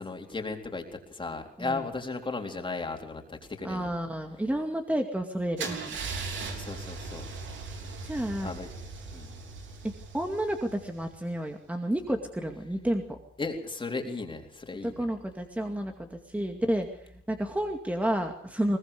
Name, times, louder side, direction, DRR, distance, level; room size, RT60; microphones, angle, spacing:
voice 1, 0.0-3.9 6.5-7.2 7.8-7.9 8.4-8.7 9.1-9.3 13.4-15.1, left 3 dB, 25° left, 3 dB, 3.9 m, -36 dB
voice 2, 3.6-6.0 8.0-8.6 10.1-13.2 14.8-17.0 17.3-18.8, right 1 dB, 5° right, 4 dB, 2.3 m, -30 dB
Car / Engine starting / Idling, 5.6-11.4, right 4 dB, 70° right, 3.6 m, -39 dB
22.0 x 19.5 x 6.8 m, 0.66 s
cardioid pair, 90°, 20 cm